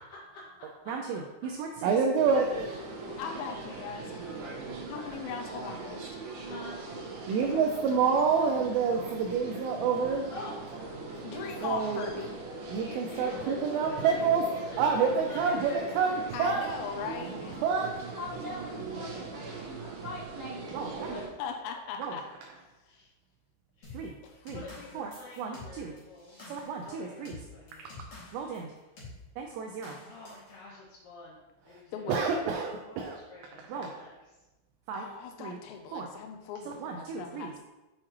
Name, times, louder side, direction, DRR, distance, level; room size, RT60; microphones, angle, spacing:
voice 1, 0.9-2.5 7.3-10.3 11.6-12.1 12.7-14.5 14.8-16.6 17.6-17.9 20.7-21.2 22.0-22.2 23.9-24.1 24.5-24.6 25.0-25.1 25.4-25.9 26.5-27.4 28.3-28.7 29.4-30.0 32.1-33.2 33.7-34.0 34.9-35.1 35.4-35.6 35.9-36.1 36.8-37.5, right 5 dB, 85° right, 2 dB, 2.4 m, -29 dB
voice 2, 2.2-3.0 3.5-5.1 6.4-6.8 10.3-11.0 12.7-16.5 20.9-21.2 22.8-23.1 23.8-24.0 24.5-26.4 26.8-27.9 30.0-31.4 31.6-32.1 32.8-34.3, left 2 dB, 60° left, -8 dB, 2.5 m, -47 dB
sound 1, 2.2-21.3, right 3 dB, 70° right, 2.6 m, -40 dB
voice 3, 3.2-4.2 4.9-6.2 7.5-7.6 11.2-12.3 16.3-17.6 21.4-22.3 22.8-23.0 24.2-24.5 31.9-32.3 34.9-37.6, left 6 dB, 90° left, 4 dB, 2.5 m, -39 dB
voice 4, 18.1-20.7, left 2 dB, 35° right, -13 dB, 1.8 m, -42 dB
sound 2, 23.8-28.6 29.0-29.2 29.8-30.5, left 2 dB, 45° left, 2.3 m, -48 dB
7.3 x 6.4 x 3.0 m, 1.0 s
omnidirectional pair, 5.6 m